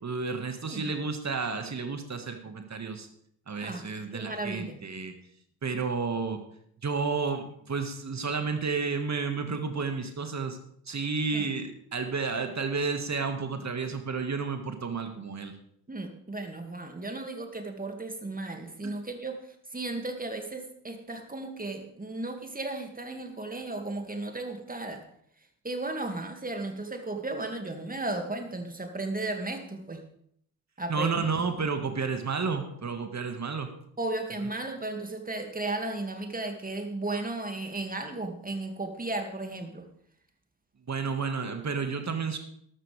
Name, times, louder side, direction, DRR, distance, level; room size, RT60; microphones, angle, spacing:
voice 1, 0.0-3.1 3.5-5.1 5.6-6.4 6.8-10.6 10.9-15.5 18.8-18.9 30.9-33.7 40.9-42.4, right 4 dB, 35° right, 7 dB, 1.9 m, -31 dB
voice 2, 4.1-4.8 11.3-11.5 15.9-19.4 19.7-25.0 25.6-30.0 30.8-31.2 34.0-39.9, right 2 dB, 15° right, 5 dB, 2.4 m, -35 dB
12.5 x 12.5 x 3.5 m, 0.68 s
figure-of-eight pair, 40°, 48 cm